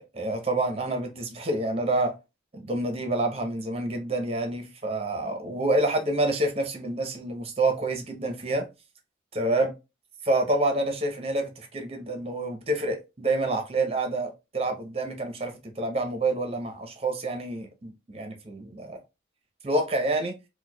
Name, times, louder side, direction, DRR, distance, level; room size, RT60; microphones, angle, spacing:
voice 1, 0.0-2.1 2.5-8.7 9.3-9.7 10.2-19.0 19.6-20.3, right 2 dB, 30° right, 0.7 m, -28 dB
4.4 x 2.1 x 2.2 m
head